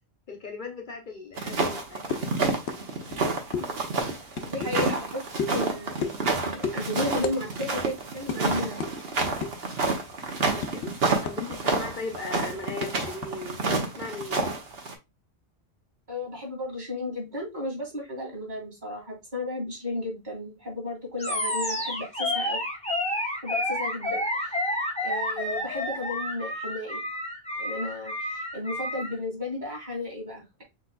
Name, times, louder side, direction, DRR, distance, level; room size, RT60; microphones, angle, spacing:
voice 1, 0.3-2.2 3.6-3.7 10.5-10.8 11.2-13.6 14.0-14.5, left 4 dB, 50° left, 0.9 m, -38 dB
sound 1, 1.4-14.9, right 3 dB, 65° right, 1.2 m, -29 dB
sound 2, 2.1-2.3 2.7-2.8 3.1-3.2 3.5-3.7 4.3-4.9 5.4-5.6 6.0-6.3 6.6-6.8 7.2-7.4 7.7-7.8 8.3-8.4 8.8-8.9 9.4-9.7 10.1-11.6 11.8-11.9 12.3-13.3, left 6 dB, 80° left, 0.9 m, -32 dB
voice 2, 4.5-5.2 5.5-6.1 6.4-8.8 16.1-22.6 23.4-24.6 25.0-27.0 27.6-30.6, left 2 dB, 45° right, 2.3 m, -34 dB
Animal, 21.2-29.2, left 1 dB, 5° left, 0.9 m, -30 dB
6.4 x 3.2 x 2.2 m
omnidirectional pair, 1.1 m